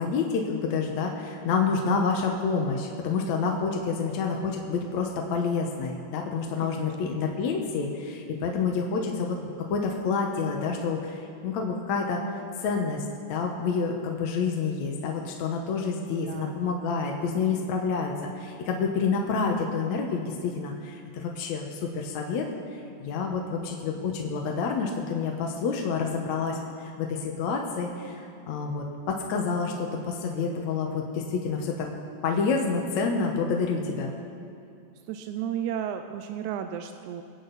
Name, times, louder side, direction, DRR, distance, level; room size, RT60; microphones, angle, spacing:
voice 1, 0.0-9.4 9.7-12.2 12.6-22.5 23.0-31.9 32.2-34.1, left 5 dB, 65° left, 1 dB, 2.1 m, -28 dB
voice 2, 6.6-7.2 16.1-16.6 35.1-37.2, right 9 dB, 80° right, 7 dB, 1.8 m, -34 dB
26.5 x 8.8 x 4.0 m, 2.4 s
omnidirectional pair, 3.9 m